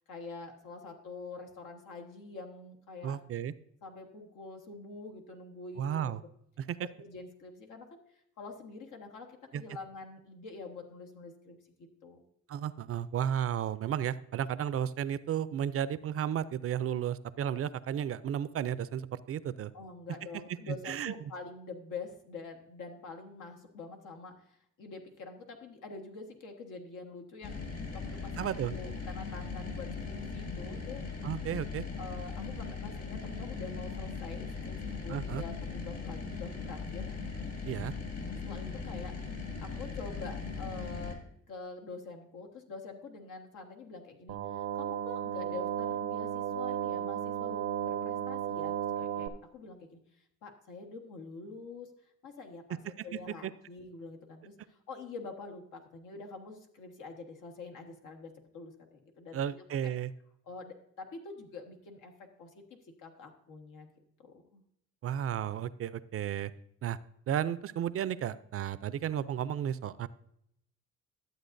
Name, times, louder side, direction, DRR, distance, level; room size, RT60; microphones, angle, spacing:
voice 1, 0.1-3.2 3.8-6.1 6.8-12.2 19.7-31.0 32.0-37.1 38.4-41.2 41.5-59.9 60.4-62.1 62.4-62.6 63.0-63.9 64.2-64.6, left 4 dB, 85° left, 2 dB, 1.4 m, -46 dB
voice 2, 3.0-3.5 5.8-6.2 6.6-6.9 9.5-9.6 12.5-19.7 20.7-21.1 28.4-28.7 31.2-31.8 35.1-35.4 37.6-37.9 53.1-53.5 59.3-60.1 65.0-66.5 66.8-67.0 67.3-70.1, right 9 dB, 50° right, 16 dB, 0.4 m, -33 dB
sound 1, 27.4-41.1, left 4 dB, 55° left, 2.2 m, -39 dB
sound 2, 44.3-49.3, right 10 dB, 90° right, 0.7 m, -34 dB
12.0 x 7.8 x 2.6 m, 0.73 s
cardioid pair, 90°, 30 cm